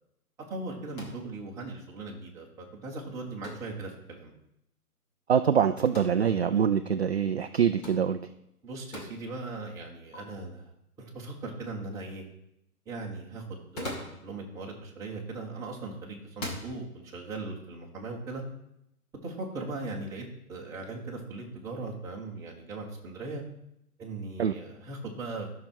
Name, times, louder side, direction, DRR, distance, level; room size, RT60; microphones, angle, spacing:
voice 1, 0.5-4.3 8.6-10.7 11.0-12.2 12.8-13.4 13.7-18.4 19.2-23.4 24.0-25.6, right 3 dB, 5° right, -5 dB, 1.4 m, -39 dB
sound 1, 0.9-1.3 3.4-3.7 5.8-6.1 7.8-8.1 8.9-9.1 10.1-10.2 13.5-14.2 15.4-15.7 16.3-16.7, left 1 dB, 25° left, 2.1 m, -39 dB
voice 2, 5.3-8.2 24.4-24.5, right 8 dB, 45° right, 8 dB, 0.4 m, -24 dB
13.0 x 6.0 x 4.5 m, 0.79 s
hypercardioid pair, 155°, 46 cm